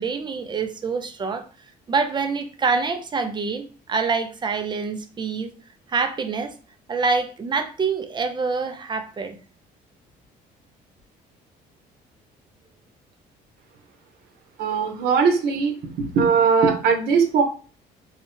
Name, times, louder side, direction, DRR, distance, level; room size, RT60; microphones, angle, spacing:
voice 1, 0.0-1.5 1.9-5.5 5.9-6.5 6.9-9.4, right 4 dB, 25° right, 7 dB, 0.4 m, -26 dB
voice 2, 14.6-15.7 16.1-17.4, right 5 dB, 70° right, 4 dB, 0.8 m, -19 dB
2.7 x 2.1 x 3.0 m, 0.38 s
cardioid pair, 110°, 17 cm